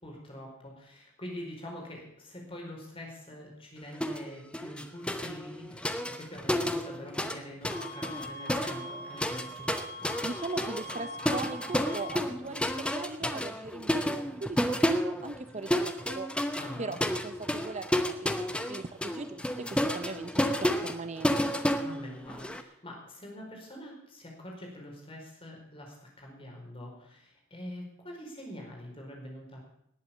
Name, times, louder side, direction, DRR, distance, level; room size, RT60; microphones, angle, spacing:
voice 1, 0.0-9.7 16.6-17.0 21.7-29.6, left 1 dB, 25° left, 0 dB, 4.8 m, -45 dB
sound 1, 4.0-4.3 4.5-7.4 7.6-22.6, equal, 5° left, 0.8 m, -31 dB
sound 2, 7.7-12.2, left 1 dB, 80° left, 6.5 m, -43 dB
voice 2, 10.2-16.3 16.8-18.3 18.7-21.6, right 3 dB, 30° right, 11 dB, 0.6 m, -40 dB
19.0 x 8.5 x 7.2 m, 0.77 s
head